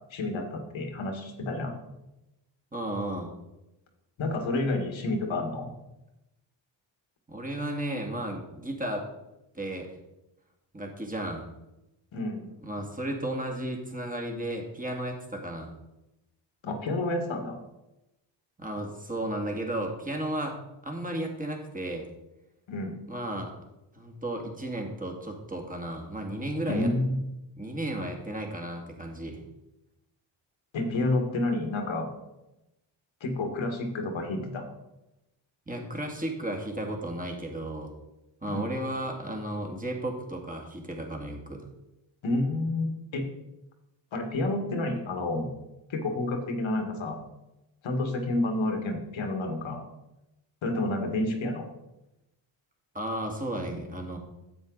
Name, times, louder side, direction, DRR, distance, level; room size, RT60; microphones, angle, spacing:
voice 1, 0.0-1.8 4.2-5.7 12.1-12.5 16.6-17.6 22.7-23.0 26.7-27.2 30.7-32.1 33.2-34.7 38.5-38.7 42.2-43.2 44.1-45.5 45.9-47.2 47.8-49.8 50.6-51.7, left 2 dB, 70° left, 4 dB, 1.9 m, -29 dB
voice 2, 2.7-3.3 7.3-9.1 9.5-9.9 10.7-11.5 12.6-15.7 18.6-20.6 20.8-22.0 23.1-23.5 23.9-26.9 27.6-29.4 35.7-37.9 38.4-41.6 52.9-54.2, right 1 dB, 15° right, 1 dB, 2.3 m, -34 dB
9.5 x 7.7 x 4.0 m, 0.93 s
cardioid pair, 65°, 48 cm